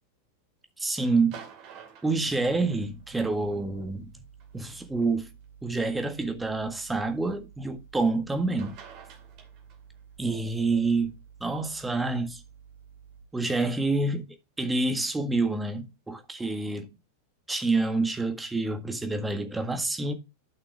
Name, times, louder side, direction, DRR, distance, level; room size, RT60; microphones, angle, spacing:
voice 1, 0.8-1.4 2.0-4.1 4.5-5.3 5.6-8.8 10.2-11.1 11.4-12.4 13.3-14.2 14.6-16.9 17.5-20.1, right 3 dB, 10° right, 1.6 m, -27 dB
sound 1, 1.3-3.1 4.4-4.5 5.4-5.5 8.3-8.4 8.6-10.0 13.4-13.5, right 7 dB, 40° right, 2.5 m, -48 dB
sound 2, 2.3-13.2, right 8 dB, 75° left, 6.0 m, -52 dB
12.0 x 6.0 x 3.5 m
figure-of-eight pair, 90°, 0 cm